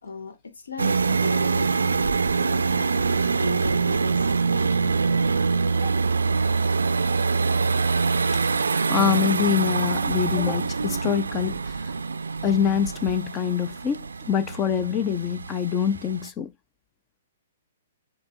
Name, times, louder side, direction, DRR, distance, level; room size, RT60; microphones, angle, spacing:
voice 1, 0.0-6.1, left 2 dB, 85° left, 1.1 m, -37 dB
sound 1, 0.8-16.3, right 4 dB, 90° right, 0.3 m, -24 dB
voice 2, 8.9-11.6 12.4-16.5, left 8 dB, 25° left, 0.4 m, -25 dB
7.4 x 2.8 x 2.3 m
hypercardioid pair, 130°, 0 cm